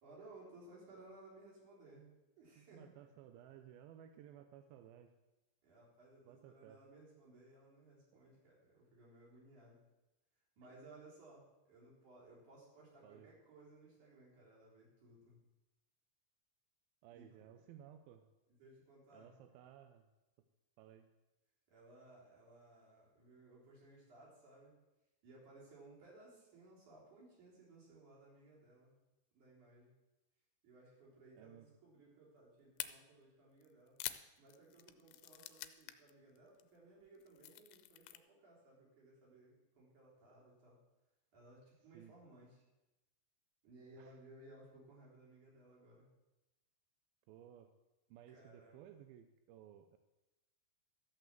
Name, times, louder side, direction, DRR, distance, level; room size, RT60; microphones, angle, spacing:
voice 1, 0.0-2.9 5.6-9.8 10.6-15.4 17.1-17.5 18.6-19.4 21.7-24.8 25.2-28.9 29.3-29.9 30.6-34.0 34.4-40.8 41.3-42.6 43.6-46.1 48.3-48.8, right 2 dB, 50° right, -5 dB, 5.0 m, -60 dB
voice 2, 2.6-5.1 6.3-6.8 13.0-13.3 17.0-18.3 19.1-20.1 20.8-21.1 31.3-31.7 41.9-42.1 44.0-44.2 47.3-47.7 48.1-50.0, right 10 dB, 80° right, 8 dB, 2.2 m, -58 dB
sound 1, 32.8-32.9 33.6-36.1 36.4-36.6 37.1-38.2, left 15 dB, 80° left, 2.5 m, -46 dB
13.5 x 5.7 x 7.5 m, 1.0 s
omnidirectional pair, 4.7 m